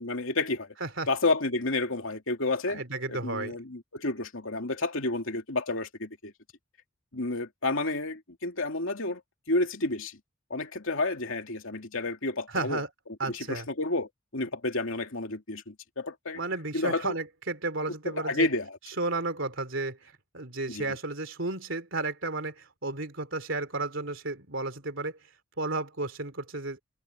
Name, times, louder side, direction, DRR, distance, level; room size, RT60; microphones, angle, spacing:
voice 1, 0.0-0.7 1.1-2.8 3.1-6.3 7.1-9.2 9.5-10.2 10.5-12.8 13.3-16.4 16.7-17.1 18.1-18.8 20.7-20.9, left 2 dB, 70° left, 2.6 m, -30 dB
voice 2, 2.7-3.6 12.5-12.9 13.2-13.7 16.3-18.5 19.0-25.2 25.6-26.8, right 2 dB, 65° right, 3.1 m, -33 dB
head